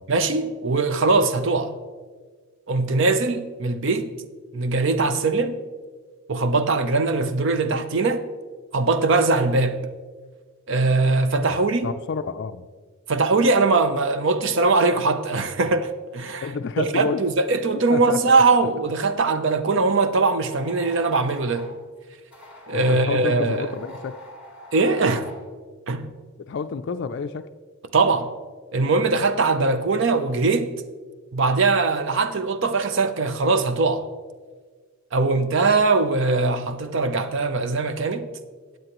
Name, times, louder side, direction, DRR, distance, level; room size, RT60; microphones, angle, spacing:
voice 1, 0.1-1.8 2.7-4.1 4.5-5.6 6.3-8.2 8.7-9.9 10.7-11.9 13.1-16.5 16.8-21.7 22.7-23.7 24.7-25.3 25.9-26.1 27.9-28.3 28.7-30.7 31.3-34.1 35.1-38.3, right 3 dB, 55° right, 0.6 m, -21 dB
voice 2, 11.8-12.7 16.4-17.2 17.9-18.2 22.7-24.2 26.4-27.5, left 5 dB, 55° left, 0.3 m, -29 dB
sound 1, 20.4-21.7 22.3-25.4, left 1 dB, 5° right, 2.0 m, -43 dB
15.5 x 8.9 x 3.0 m
head